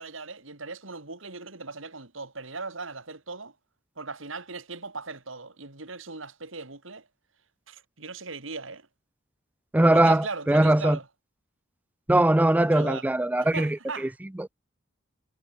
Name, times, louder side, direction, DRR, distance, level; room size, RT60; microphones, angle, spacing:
voice 1, 0.0-3.5 4.0-7.1 7.7-8.9 9.9-11.1 12.6-13.1 13.4-14.1, right 4 dB, 75° right, 3.3 m, -38 dB
voice 2, 9.7-11.0 12.1-13.8 14.4-14.5, right 1 dB, 10° right, 0.4 m, -21 dB
head